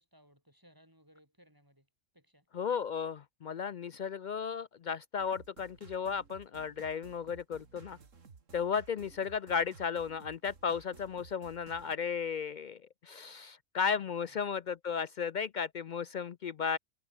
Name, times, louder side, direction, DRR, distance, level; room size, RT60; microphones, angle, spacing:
voice 1, 0.0-1.9 2.1-2.5 13.9-14.4, equal, 15° right, 6.1 m, -63 dB
voice 2, 2.5-8.0 8.5-16.8, left 6 dB, 60° left, 0.5 m, -35 dB
sound 1, 5.2-12.0, right 5 dB, 85° right, 2.3 m, -55 dB
omnidirectional pair, 1.3 m